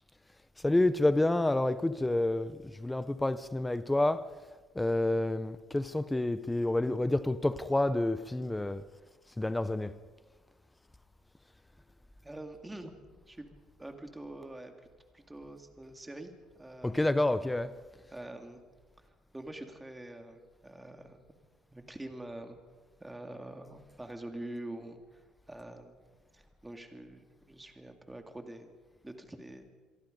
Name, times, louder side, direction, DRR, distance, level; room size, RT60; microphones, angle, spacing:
voice 1, 0.6-4.3 4.7-8.9 9.4-10.0 16.8-17.8, left 1 dB, 5° left, 0.6 m, -29 dB
voice 2, 12.2-12.9 13.3-13.5 13.8-14.7 15.1-16.3 16.6-17.1 18.1-18.6 19.3-21.2 21.7-22.6 23.0-25.0 25.5-26.0 26.3-28.7 29.0-29.7, right 1 dB, 10° right, 2.2 m, -45 dB
26.5 x 22.5 x 5.3 m
cardioid pair, 150°, 0 cm